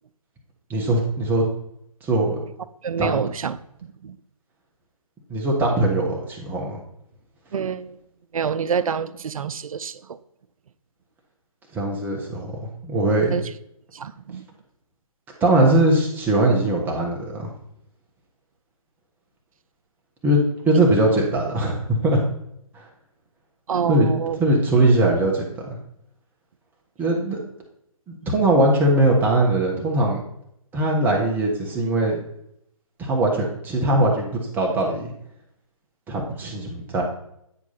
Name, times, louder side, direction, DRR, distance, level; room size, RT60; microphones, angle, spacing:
voice 1, 0.7-1.5 2.0-2.4 3.0-3.2 5.3-6.8 11.7-12.5 12.8-13.3 15.4-17.5 20.2-22.2 22.7-22.8 23.9-24.1 24.4-25.8 27.0-27.4 28.1-30.2 30.7-32.2 33.0-35.1 36.1-37.0, right 1 dB, 10° right, 1.3 m, -20 dB
voice 2, 2.8-3.6 4.0-4.2 7.5-8.0 8.3-10.2 13.3-13.4 13.9-14.5 23.7-24.4, right 7 dB, 70° right, 0.5 m, -27 dB
9.3 x 4.5 x 4.2 m
figure-of-eight pair, 145°, 18 cm